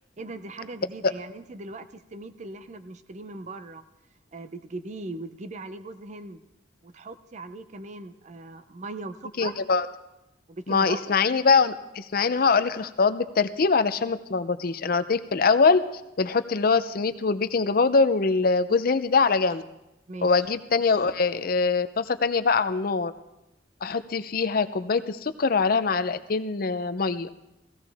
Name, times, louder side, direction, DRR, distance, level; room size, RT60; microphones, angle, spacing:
voice 1, 0.2-3.8 4.3-6.4 6.8-9.5 10.5-11.2 20.1-20.3, right 2 dB, 40° right, 11 dB, 0.5 m, -39 dB
voice 2, 9.4-9.9 10.7-15.8 16.2-19.6 20.2-23.1 23.8-27.3, left 4 dB, 50° left, 12 dB, 0.6 m, -23 dB
17.0 x 15.5 x 3.5 m, 0.91 s
head